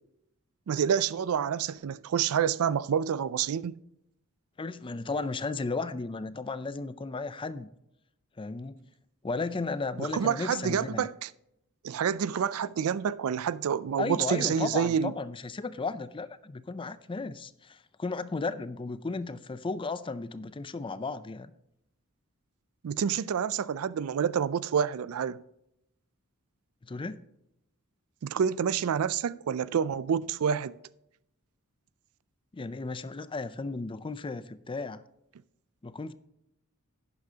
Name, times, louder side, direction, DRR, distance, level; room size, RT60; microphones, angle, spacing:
voice 1, 0.7-3.8 10.0-11.3 11.8-15.1 22.8-25.4 28.2-30.8, right 7 dB, 70° right, 0.4 m, -28 dB
voice 2, 4.6-7.7 8.4-8.9 9.2-11.1 14.0-21.5 26.8-27.2 32.5-35.0 35.8-36.1, left 3 dB, 25° left, 0.4 m, -34 dB
11.5 x 9.6 x 2.8 m
head